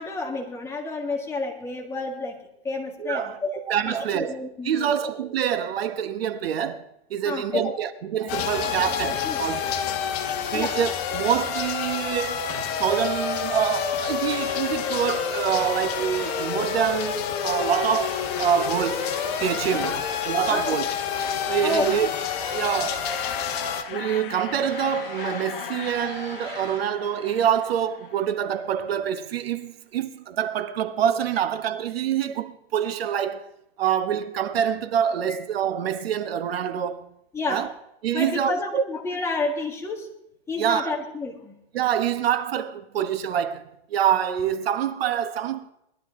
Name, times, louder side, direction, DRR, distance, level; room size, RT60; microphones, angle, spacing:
voice 1, 0.0-2.4 2.6-5.1 7.2-7.7 9.2-9.4 10.5-10.8 20.5-20.7 21.6-22.0 22.7-22.8 37.3-37.7 38.1-40.1 40.5-41.6, left 3 dB, 10° left, 1.7 m, -30 dB
voice 2, 3.0-3.4 3.7-4.4 4.6-9.8 10.5-20.9 21.5-22.1 22.4-23.0 23.9-33.5 33.8-37.1 37.5-37.7 38.0-38.8 40.6-40.9 41.7-45.7, right 9 dB, 75° right, 1.2 m, -26 dB
sound 1, 8.3-23.8, left 8 dB, 40° left, 1.6 m, -28 dB
sound 2, 14.3-15.2 15.5-16.6 17.7-18.7 19.0-20.0 21.1-22.1 22.4-23.4 24.6-25.5 25.8-26.8, right 3 dB, 35° right, 3.5 m, -41 dB
sound 3, 23.1-28.6, left 11 dB, 60° left, 1.1 m, -38 dB
19.5 x 12.5 x 3.7 m
supercardioid pair, 160°, 30 cm